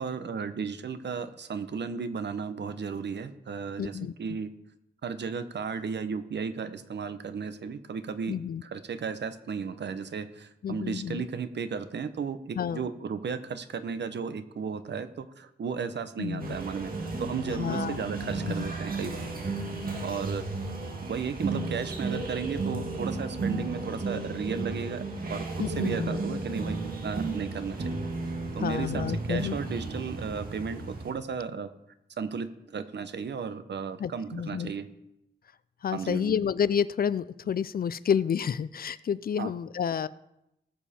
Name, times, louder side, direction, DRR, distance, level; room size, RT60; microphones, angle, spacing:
voice 1, 0.0-4.5 5.0-16.9 17.2-19.3 20.0-20.4 21.1-28.1 28.5-31.7 32.2-34.9 35.9-36.4 39.4-39.5, right 6 dB, 70° right, 11 dB, 0.9 m, -34 dB
voice 2, 3.8-4.1 8.3-8.6 10.6-11.3 12.6-12.8 16.2-16.6 17.5-18.0 18.6-18.7 25.6-26.2 28.6-29.5 34.0-34.7 35.8-40.1, left 8 dB, 55° left, 18 dB, 0.4 m, -29 dB
sound 1, 16.4-31.1, right 3 dB, 50° right, 1.8 m, -34 dB
19.0 x 7.2 x 4.3 m, 0.87 s
wide cardioid pair, 175°, 19 cm